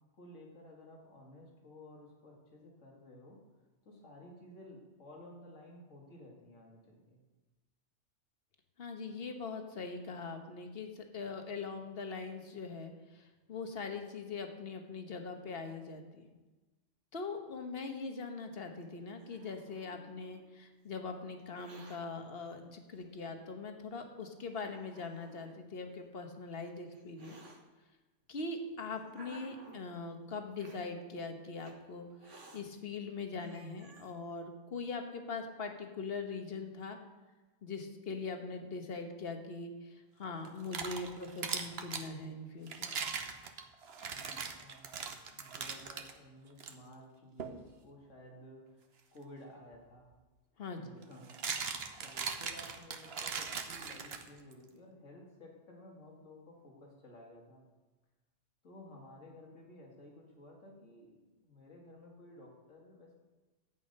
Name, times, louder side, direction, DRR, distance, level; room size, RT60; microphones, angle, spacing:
voice 1, 0.1-3.4 3.8-7.2 44.0-50.1 50.7-57.7 58.6-63.1, left 1 dB, 80° left, 0 dB, 2.4 m, -54 dB
voice 2, 8.8-16.3 17.1-27.4 28.3-37.0 37.6-42.9 50.6-50.8, left 4 dB, 55° left, 5 dB, 1.4 m, -42 dB
Hiss, 18.8-20.5 21.4-22.0 23.0-23.1 23.9-24.0 24.5-25.5 26.4-27.6 28.4-29.9 30.5-30.9 31.6-31.7 32.2-32.6 33.1-33.2 33.4-34.1, right 2 dB, 75° right, 1.7 m, -56 dB
sound 1, 40.4-42.1 42.7-46.1 46.6-46.7 47.4-47.6 49.7-49.8 51.0-54.5, right 6 dB, 55° right, 1.1 m, -40 dB
12.0 x 8.5 x 5.4 m, 1.2 s
omnidirectional pair, 1.3 m